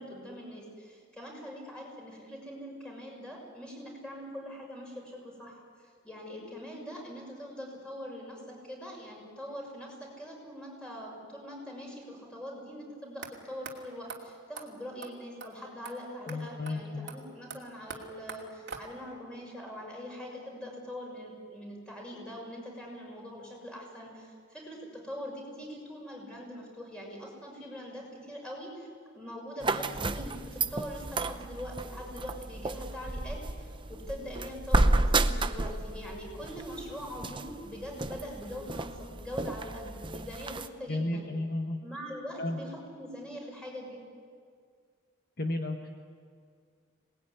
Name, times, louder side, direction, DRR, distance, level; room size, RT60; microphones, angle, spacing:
voice 1, 0.0-41.3 41.8-44.0, equal, 5° left, -2 dB, 6.3 m, -43 dB
sound 1, 13.2-13.3 13.7-13.8 14.1-14.2 14.6-14.7 15.0-15.1 15.4-15.5 15.9-16.0 16.3-16.4 16.7-16.8 17.1-19.2, right 5 dB, 55° right, 2.8 m, -44 dB
voice 2, 16.3-17.1 40.9-41.8 42.4-42.6 45.4-45.9, left 2 dB, 45° left, 4 dB, 1.4 m, -33 dB
sound 2, 29.6-40.7, right 2 dB, 25° right, 0.7 m, -32 dB
26.5 x 19.5 x 9.7 m, 2.1 s
head